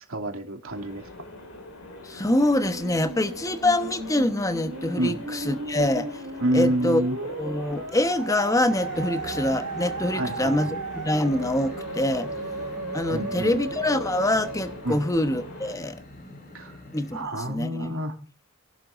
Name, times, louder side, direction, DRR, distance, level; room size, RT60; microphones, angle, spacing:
voice 1, 0.1-1.1 5.0-5.2 6.4-7.2 10.1-10.8 13.1-13.6 14.8-15.0 16.5-16.8 17.1-18.2, right 1 dB, 75° right, 2.6 m, -28 dB
sound 1, 0.7-15.8, left 2 dB, 80° left, 5.6 m, -43 dB
voice 2, 2.0-6.2 6.5-7.0 7.4-12.3 12.9-16.0 16.9-17.9, left 1 dB, 15° left, 1.0 m, -25 dB
Musical instrument, 2.1-15.5, right 3 dB, 90° right, 2.0 m, -36 dB
sound 2, 8.7-17.2, left 1 dB, 45° left, 4.8 m, -42 dB
27.5 x 11.5 x 2.5 m
head